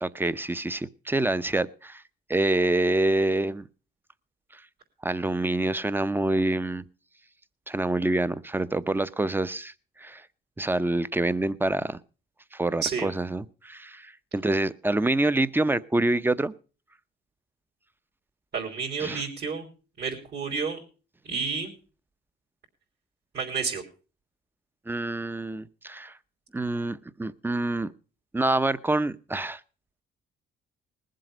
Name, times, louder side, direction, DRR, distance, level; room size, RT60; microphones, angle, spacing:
voice 1, 0.0-2.0 2.3-3.7 4.5-4.6 5.0-6.9 7.7-9.7 10.0-10.2 10.6-12.0 12.5-16.5 19.0-19.2 24.9-26.1 26.5-27.9 28.3-29.6, right 2 dB, 10° right, 16 dB, 0.7 m, -26 dB
voice 2, 18.5-19.7 20.0-20.8 21.3-21.7 23.3-23.8, right 5 dB, 55° right, -3 dB, 3.7 m, -30 dB
20.0 x 7.7 x 5.0 m, 0.36 s
cardioid pair, 90°, 20 cm